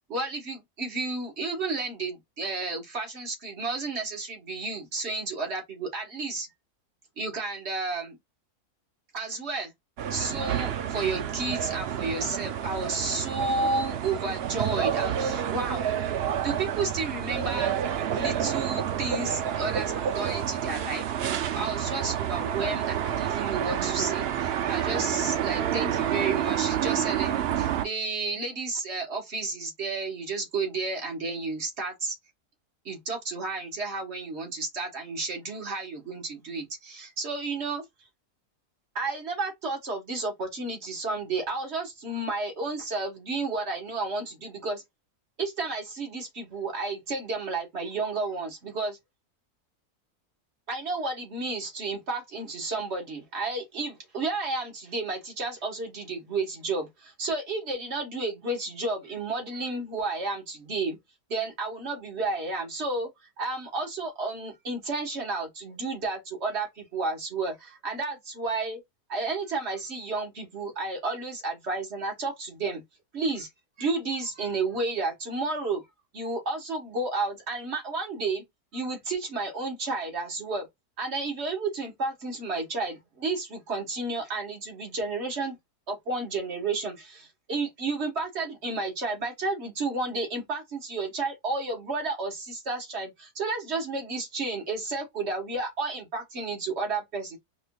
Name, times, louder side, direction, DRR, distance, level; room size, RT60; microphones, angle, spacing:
voice 1, 0.1-6.5 7.2-8.2 9.1-9.7 10.1-15.8 16.4-17.7 18.2-21.1 21.5-32.2 32.8-37.8 38.9-44.8 45.4-49.0 50.7-61.0 61.3-63.1 63.4-68.8 69.1-72.8 73.1-73.5 73.8-75.9 76.1-78.4 78.7-80.7 81.0-85.5 85.9-97.4, right 3 dB, 50° right, 1.4 m, -32 dB
sound 1, 10.0-27.9, right 9 dB, 70° right, 0.6 m, -29 dB
4.9 x 2.5 x 2.2 m
omnidirectional pair, 1.6 m